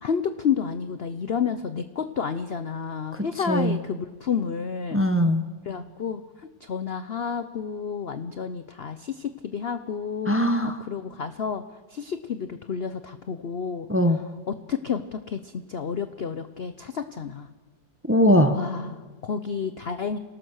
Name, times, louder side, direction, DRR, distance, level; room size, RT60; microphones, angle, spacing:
voice 1, 0.0-5.0 5.7-10.4 10.6-11.6 11.9-13.9 14.5-17.5 18.5-20.2, left 6 dB, 55° left, 10 dB, 0.7 m, -30 dB
voice 2, 3.5-3.8 4.9-5.4 10.3-10.7 13.9-14.2 18.1-18.6, equal, 10° right, 7 dB, 0.8 m, -20 dB
27.5 x 18.0 x 6.5 m, 1.3 s
omnidirectional pair, 2.0 m